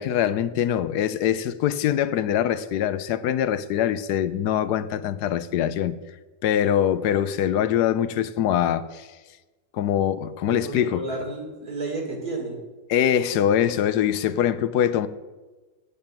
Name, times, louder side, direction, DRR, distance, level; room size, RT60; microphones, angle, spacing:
voice 1, 0.0-6.0 6.4-9.1 9.7-11.0 12.9-15.1, left 10 dB, 80° left, 1.1 m, -23 dB
voice 2, 10.5-12.6, right 2 dB, 65° right, 2.8 m, -32 dB
8.4 x 7.8 x 8.7 m
omnidirectional pair, 1.7 m